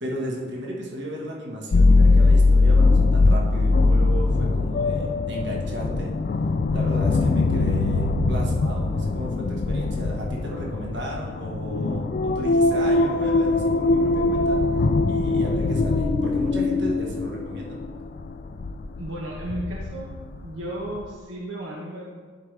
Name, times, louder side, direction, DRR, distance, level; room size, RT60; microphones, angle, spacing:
voice 1, 0.0-6.1 6.7-14.6 15.1-17.8, right 1 dB, 60° right, -2 dB, 1.4 m, -34 dB
sound 1, 1.7-20.4 20.9-21.0, left 3 dB, 45° left, 0.3 m, -21 dB
voice 2, 19.0-20.1 20.4-22.0, right 1 dB, 85° right, -3 dB, 1.0 m, -34 dB
10.5 x 4.8 x 3.3 m, 1.5 s
head